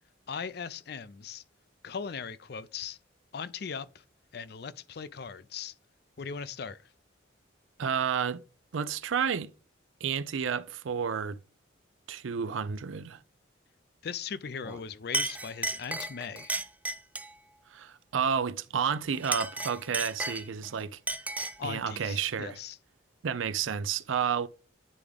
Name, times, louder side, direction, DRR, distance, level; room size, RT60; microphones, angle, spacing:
voice 1, 0.3-1.4 1.8-3.0 3.3-4.0 4.3-5.7 6.2-6.8 14.0-16.5 21.6-22.8, left 6 dB, 55° left, 0.4 m, -39 dB
voice 2, 7.8-8.4 8.7-9.5 10.0-11.4 12.1-13.2 17.7-21.0 21.6-22.6 23.2-24.5, right 7 dB, 85° right, 0.5 m, -31 dB
Chink clink, 14.6-14.8 15.1-17.4 19.1-20.7 21.1-21.7, right 2 dB, 10° right, 0.3 m, -34 dB
9.6 x 3.6 x 3.4 m
head